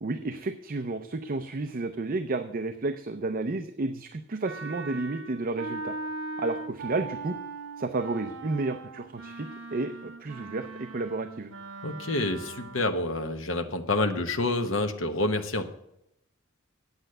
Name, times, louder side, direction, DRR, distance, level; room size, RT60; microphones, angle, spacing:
voice 1, 0.0-5.9 6.4-7.4 7.8-11.5, right 3 dB, 45° right, 8 dB, 0.6 m, -31 dB
Wind instrument woodwind instrument, 4.4-13.1, right 3 dB, 80° right, 1.2 m, -40 dB
voice 2, 11.8-15.7, left 2 dB, 65° left, 6 dB, 1.0 m, -28 dB
9.1 x 8.1 x 6.6 m, 0.80 s
head